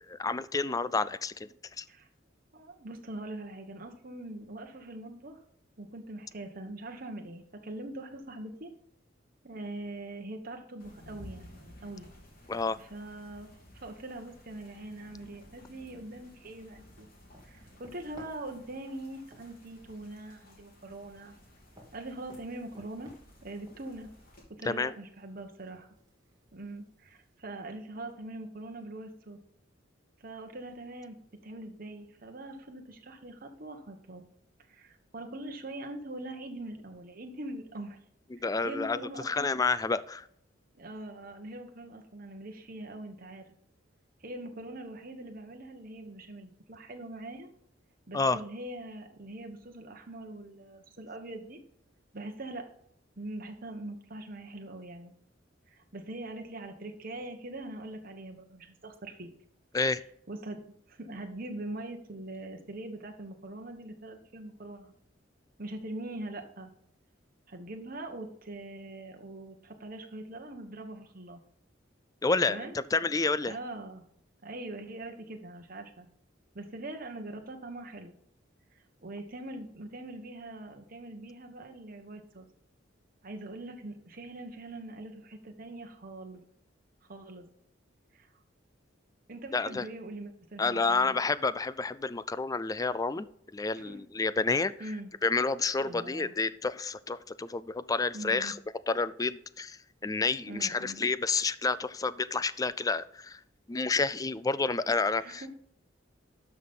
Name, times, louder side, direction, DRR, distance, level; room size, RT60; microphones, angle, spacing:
voice 1, 0.1-1.5 1.8-1.9 12.5-12.8 24.6-24.9 38.3-40.3 48.1-48.4 59.7-60.0 72.2-73.5 89.5-89.9 90.6-93.3 93.5-94.9 95.2-98.6 98.9-103.4 103.7-105.6, left 4 dB, 20° left, 16 dB, 0.4 m, -29 dB
voice 2, 2.5-5.4 5.8-8.7 9.4-12.1 12.9-17.1 17.4-21.3 21.9-23.1 23.4-24.1 24.5-25.9 26.5-29.4 30.2-31.2 31.4-34.2 34.7-38.0 38.4-39.6 40.7-43.5 44.2-47.5 48.1-51.6 52.1-52.7 53.2-55.1 55.7-59.3 60.3-60.6 60.9-64.9 65.6-66.7 67.5-71.4 72.5-72.7 73.5-74.0 74.4-76.1 76.5-78.1 79.0-82.5 83.2-86.4 87.1-87.4 88.1-88.3 89.3-91.1 93.9-94.0 94.8-95.1 95.8-96.3 98.1-98.5 100.5-101.0 105.2-105.5, right 2 dB, 50° right, 4 dB, 1.4 m, -42 dB
sound 1, 10.8-24.4, equal, 50° left, 3.1 m, -55 dB
sound 2, 15.6-27.4, equal, 20° right, 2.3 m, -60 dB
12.0 x 5.6 x 3.8 m, 0.70 s
head